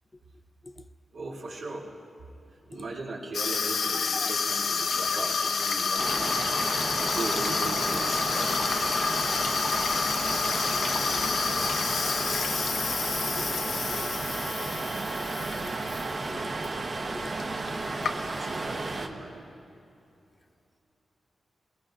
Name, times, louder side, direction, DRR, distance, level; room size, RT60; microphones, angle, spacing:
voice 1, 1.1-1.9 2.7-6.5 7.0-8.6 18.2-19.4, right 2 dB, 85° right, 2.7 m, -38 dB
Water tap faucet / Sink (filling or washing), 3.3-16.0 16.4-16.7 17.4-17.5 17.7-18.6, left 5 dB, 75° left, 0.6 m, -29 dB
sound 1, 6.0-19.1, right 3 dB, 45° right, 1.0 m, -33 dB
voice 2, 10.7-11.3 13.4-13.5 13.9-14.1 15.6-15.8 16.3-16.5 17.1-17.3, left 2 dB, 25° left, 0.5 m, -44 dB
21.0 x 20.0 x 2.5 m
wide cardioid pair, 95°, 0 cm